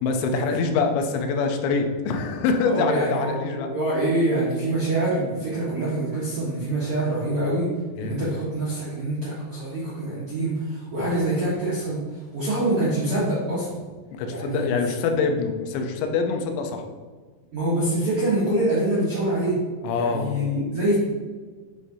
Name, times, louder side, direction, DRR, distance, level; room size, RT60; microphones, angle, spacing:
voice 1, 0.0-3.7 8.0-8.3 14.1-16.8 19.8-20.4, left 4 dB, 85° left, 4 dB, 2.9 m, -25 dB
voice 2, 2.6-7.7 8.0-13.8 14.2-14.7 17.5-19.6 19.9-20.9, right 1 dB, 70° right, -9 dB, 1.3 m, -25 dB
8.7 x 4.9 x 2.7 m, 1.5 s
omnidirectional pair, 5.1 m